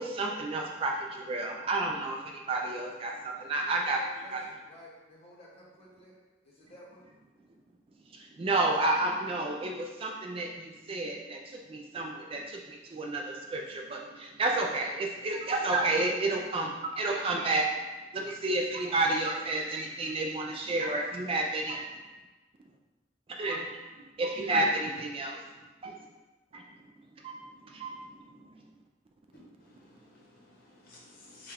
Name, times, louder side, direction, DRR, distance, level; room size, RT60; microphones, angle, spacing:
voice 1, 0.0-4.5 8.1-17.7 18.1-21.9 23.4-23.7 24.2-25.4 25.8-26.0 26.5-26.6 27.2-27.9 28.3-28.4, right 2 dB, 30° right, 1 dB, 0.3 m, -31 dB
voice 2, 4.0-4.4 4.7-6.1 6.4-7.0, equal, 30° left, -6 dB, 1.3 m, -53 dB
voice 3, 29.3-31.5, left 2 dB, 50° left, -4 dB, 0.9 m, -54 dB
5.4 x 2.3 x 3.4 m, 1.2 s
head